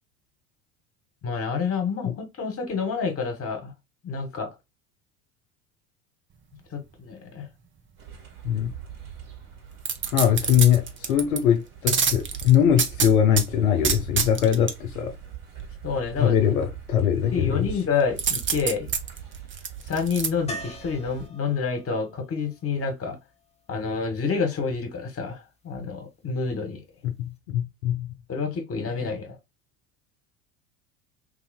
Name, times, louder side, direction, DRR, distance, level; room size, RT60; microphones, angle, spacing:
voice 1, 1.2-3.7 4.0-4.5 6.7-7.5 15.8-16.4 17.3-18.9 19.8-23.2 23.7-26.8 28.3-29.4, left 5 dB, 35° left, 1.6 m, -28 dB
sound 1, 8.0-21.3, right 9 dB, 50° right, 1.9 m, -42 dB
sound 2, 9.8-11.4 11.9-13.5 13.8-14.7 18.2-20.3 20.7-20.8, right 6 dB, 25° right, 0.8 m, -26 dB
voice 2, 10.1-15.1 16.2-17.7 27.0-28.1, left 9 dB, 80° left, 0.7 m, -22 dB
sound 3, 20.5-24.4 27.0-27.1 27.4-27.5, right 1 dB, 15° left, 0.9 m, -43 dB
3.1 x 2.6 x 4.1 m
hypercardioid pair, 70°, 43 cm